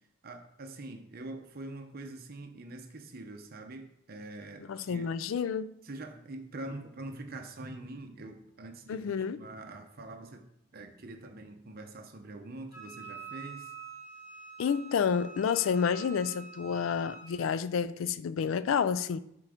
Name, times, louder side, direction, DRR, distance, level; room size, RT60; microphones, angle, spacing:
voice 1, 0.2-5.1 5.8-13.7, right 2 dB, 50° right, 0.7 m, -44 dB
voice 2, 4.7-5.7 8.9-9.4 14.6-19.2, left 6 dB, 80° left, 0.4 m, -29 dB
Wind instrument woodwind instrument, 12.7-17.3, right 5 dB, 45° left, 2.2 m, -47 dB
7.4 x 3.8 x 5.0 m
head